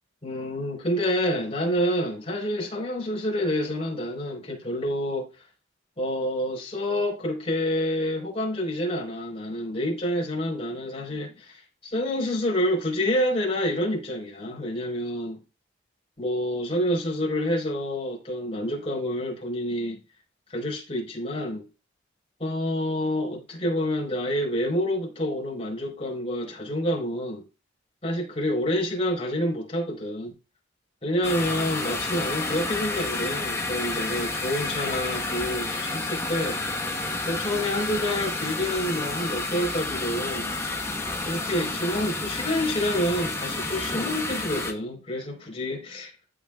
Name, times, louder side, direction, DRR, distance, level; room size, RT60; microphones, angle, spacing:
voice 1, 0.2-5.3 6.0-15.4 16.2-20.0 20.5-21.6 22.4-27.4 28.0-30.3 31.0-36.6 37.3-40.5 41.2-46.1, equal, 30° left, 4.7 m, -28 dB
sound 1, 31.2-44.7, left 2 dB, 15° left, 1.3 m, -30 dB
15.0 x 5.8 x 2.5 m
head